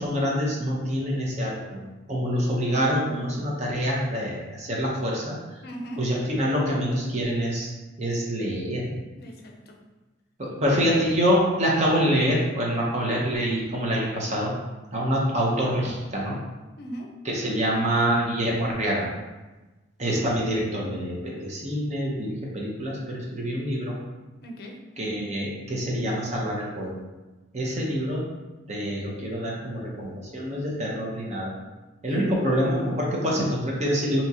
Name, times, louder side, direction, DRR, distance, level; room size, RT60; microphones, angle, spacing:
voice 1, 0.0-5.4 6.0-7.7 8.0-8.9 10.4-14.5 14.9-16.4 17.2-19.1 20.0-24.0 25.0-27.0 27.5-28.2 28.7-31.5 32.0-34.2, equal, 40° right, -3 dB, 0.7 m, -26 dB
voice 2, 5.6-6.1 9.2-9.8 16.8-17.1 24.4-24.8 32.1-32.3, right 1 dB, 55° left, 1 dB, 0.5 m, -38 dB
3.6 x 2.8 x 2.8 m, 1.1 s
head